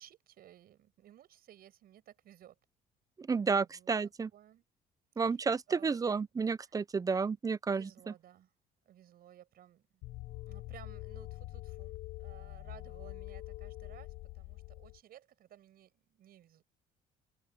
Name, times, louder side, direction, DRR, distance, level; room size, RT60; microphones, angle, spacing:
voice 1, 0.0-2.6 3.4-4.0 4.3-4.6 5.2-5.4 5.7-6.1 6.6-6.8 7.7-8.5 8.8-10.0 10.5-16.6, right 11 dB, 65° right, 5.8 m, -57 dB
voice 2, 3.2-4.3 5.2-8.1, right 5 dB, 20° right, 0.5 m, -31 dB
sound 1, 10.0-15.0, left 18 dB, 80° left, 0.8 m, -45 dB
open air
cardioid pair, 110°, 17 cm